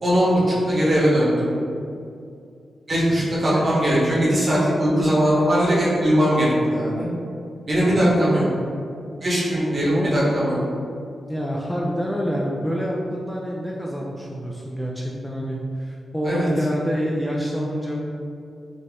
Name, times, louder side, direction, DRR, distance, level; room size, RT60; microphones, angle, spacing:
voice 1, 0.0-1.5 2.9-7.1 7.7-8.4 9.2-10.6 16.2-16.5, equal, 45° right, -7 dB, 1.2 m, -20 dB
voice 2, 11.3-18.0, equal, 5° left, -3 dB, 0.3 m, -27 dB
4.1 x 2.1 x 3.5 m, 2.4 s
wide cardioid pair, 110°, 0 cm